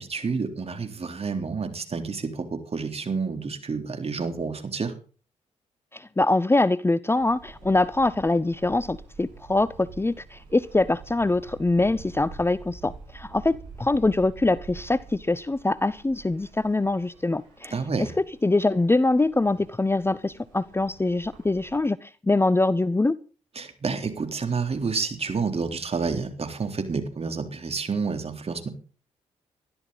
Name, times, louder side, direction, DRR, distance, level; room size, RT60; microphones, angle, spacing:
voice 1, 0.0-4.9 17.7-18.1 23.6-28.7, right 5 dB, 40° right, 6 dB, 3.6 m, -29 dB
voice 2, 5.9-23.2, left 2 dB, 15° left, 19 dB, 0.7 m, -24 dB
sound 1, 7.1-21.8, right 4 dB, 85° right, 7.6 m, -47 dB
20.5 x 12.5 x 4.1 m, 0.38 s
hypercardioid pair, 40°, 15 cm